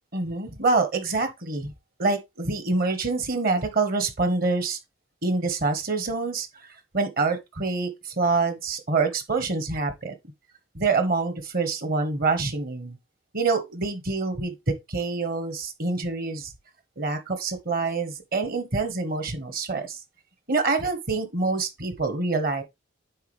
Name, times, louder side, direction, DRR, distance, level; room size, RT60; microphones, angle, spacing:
voice 1, 0.1-1.7 2.0-4.8 5.2-6.5 6.9-10.1 10.7-13.0 13.3-14.5 14.9-16.5 17.0-20.0 20.5-22.6, right 3 dB, 50° right, 1.2 m, -26 dB
9.4 x 3.9 x 3.1 m
head